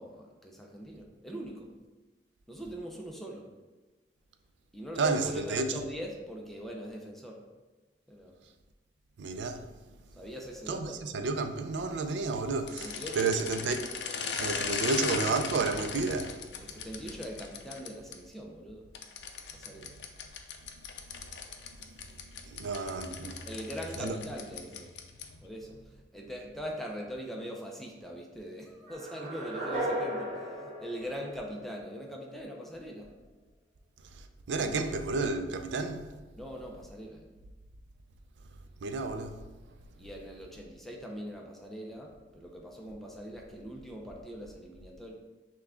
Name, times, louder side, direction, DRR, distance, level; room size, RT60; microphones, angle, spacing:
voice 1, 0.0-1.7 2.5-3.5 4.7-7.4 8.1-8.3 10.2-11.0 12.8-13.3 16.6-18.8 19.5-19.9 23.5-24.9 25.4-33.1 34.5-34.9 36.3-37.3 40.0-45.1, equal, ahead, 0.5 m, -42 dB
voice 2, 5.0-5.8 9.2-9.6 10.7-13.9 14.4-16.4 22.5-23.4 24.0-24.1 34.5-36.0 38.8-39.4, right 3 dB, 80° right, 0.4 m, -31 dB
sound 1, 12.6-18.1 18.9-25.4, left 6 dB, 75° left, 0.4 m, -38 dB
sound 2, 28.9-32.0, right 1 dB, 45° right, 1.1 m, -36 dB
5.7 x 2.2 x 3.6 m
head